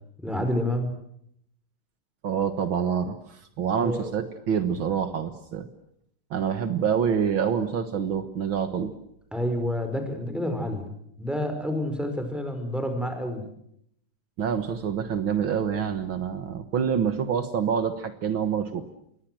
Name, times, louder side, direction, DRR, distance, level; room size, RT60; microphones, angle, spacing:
voice 1, 0.2-0.9 3.8-4.1 9.3-10.9 11.2-13.4, left 1 dB, ahead, 6 dB, 5.2 m, -29 dB
voice 2, 2.2-5.7 6.3-8.9 14.4-18.8, right 7 dB, 70° right, 9 dB, 2.2 m, -26 dB
27.0 x 22.5 x 7.8 m, 0.73 s
omnidirectional pair, 2.3 m